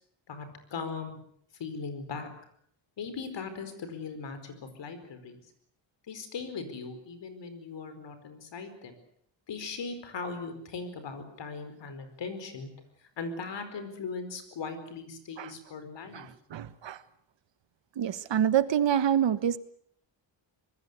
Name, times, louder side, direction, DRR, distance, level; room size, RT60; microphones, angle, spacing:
voice 1, 0.3-1.2 1.6-2.3 3.0-5.4 6.1-8.9 9.5-12.7 13.2-16.3, left 4 dB, 65° left, 10 dB, 4.8 m, -39 dB
voice 2, 16.1-17.0 18.0-19.6, right 9 dB, 70° right, 14 dB, 1.4 m, -27 dB
25.0 x 20.5 x 8.1 m, 0.65 s
wide cardioid pair, 180°, 46 cm